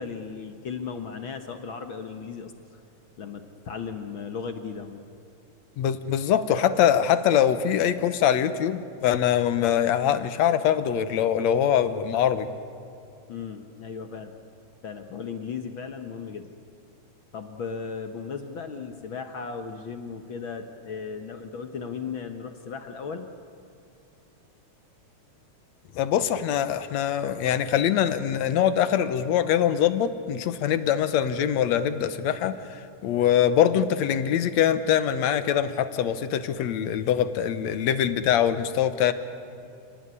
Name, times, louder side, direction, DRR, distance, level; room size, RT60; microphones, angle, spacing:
voice 1, 0.0-2.8 3.2-5.0 13.3-14.3 14.8-16.5 17.3-23.3, left 5 dB, 55° left, 7 dB, 1.5 m, -36 dB
voice 2, 5.8-12.5 26.0-39.1, left 9 dB, 70° left, 12 dB, 2.2 m, -23 dB
29.5 x 18.0 x 9.8 m, 2.6 s
omnidirectional pair, 3.4 m